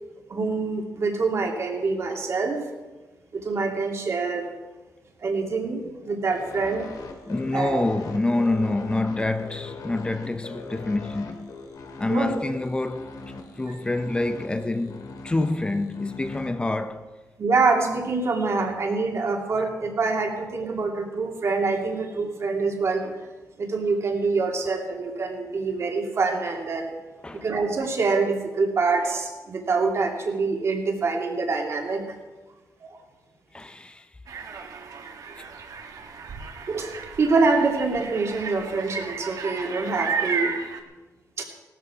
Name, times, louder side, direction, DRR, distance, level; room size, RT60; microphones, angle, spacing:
voice 1, 0.3-2.6 3.3-4.5 5.2-6.9 7.5-7.8 12.1-12.3 13.7-13.8 17.4-23.2 23.6-26.9 27.3-32.0 32.8-32.9 36.7-40.5 41.4-41.5, right 4 dB, 45° right, 2.5 m, -25 dB
sound 1, 6.3-16.5, left 3 dB, 75° left, 2.3 m, -41 dB
voice 2, 7.3-11.5 12.0-13.2 13.6-17.1 27.2-27.5 33.5-34.1, left 2 dB, 15° left, 0.6 m, -27 dB
sound 2, 34.3-40.8, right 5 dB, 65° right, 1.7 m, -33 dB
18.0 x 13.0 x 4.9 m
wide cardioid pair, 140°, 6 cm